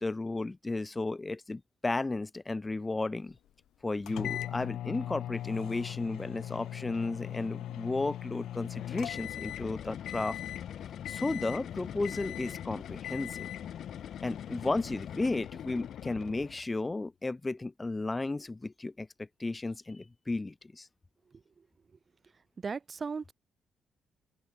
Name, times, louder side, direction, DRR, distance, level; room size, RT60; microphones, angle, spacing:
voice 1, 0.0-3.3 3.8-10.4 11.1-13.5 14.2-20.9, left 2 dB, 15° left, 0.7 m, -34 dB
sound 1, 4.1-9.7 10.1-10.6 11.1-11.7 12.0-12.7 13.0-13.7, left 12 dB, 80° left, 0.3 m, -39 dB
sound 2, 8.7-16.7, left 10 dB, 55° left, 0.7 m, -42 dB
voice 2, 22.6-23.3, right 5 dB, 25° right, 0.9 m, -37 dB
open air
cardioid pair, 170°, 0 cm